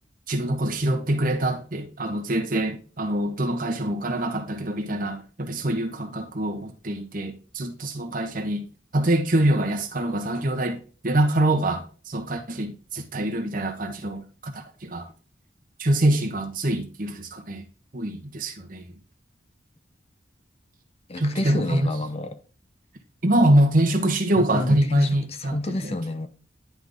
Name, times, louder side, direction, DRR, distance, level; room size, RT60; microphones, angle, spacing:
voice 1, 0.3-8.6 8.9-14.5 14.8-15.1 15.8-17.6 17.9-18.9 21.2-21.9 23.2-26.0, right 1 dB, 45° right, 1.2 m, -24 dB
voice 2, 21.1-22.4 24.3-26.3, left 2 dB, 30° left, 0.6 m, -29 dB
10.5 x 3.9 x 3.5 m
head